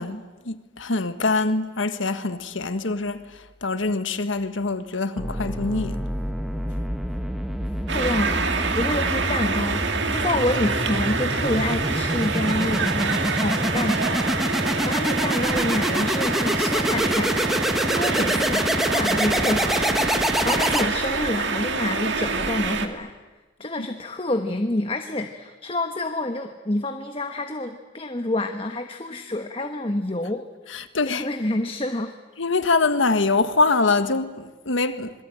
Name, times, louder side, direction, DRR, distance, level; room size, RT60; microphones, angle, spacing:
voice 1, 0.0-6.0 18.3-18.4 23.8-23.9 30.7-31.3 32.4-35.1, left 3 dB, 80° left, 1.5 m, -24 dB
sound 1, 5.2-21.3, equal, ahead, 1.2 m, -26 dB
voice 2, 7.9-23.1 23.6-32.1, left 1 dB, 30° left, 1.2 m, -28 dB
sound 2, 7.9-22.9, right 4 dB, 65° right, 2.0 m, -26 dB
26.5 x 22.0 x 8.9 m
head